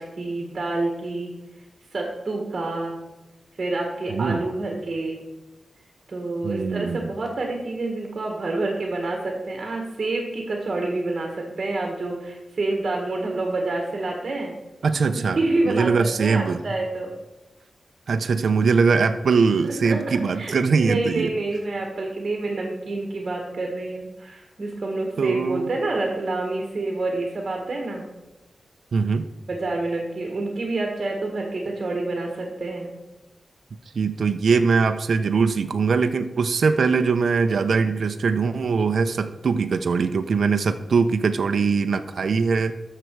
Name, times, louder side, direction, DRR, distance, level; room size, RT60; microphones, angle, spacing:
voice 1, 0.0-1.3 1.9-3.0 3.6-5.2 6.1-14.5 15.3-15.9 16.2-17.1 19.6-20.0 20.3-28.0 29.5-32.9, right 2 dB, 40° right, 1 dB, 1.6 m, -28 dB
voice 2, 4.1-4.4 6.4-7.1 14.8-15.4 15.7-16.6 18.1-21.3 25.2-25.7 28.9-29.3 33.9-42.7, right 5 dB, 65° right, 8 dB, 0.5 m, -21 dB
12.5 x 6.7 x 4.6 m, 1.1 s
wide cardioid pair, 180°, 0 cm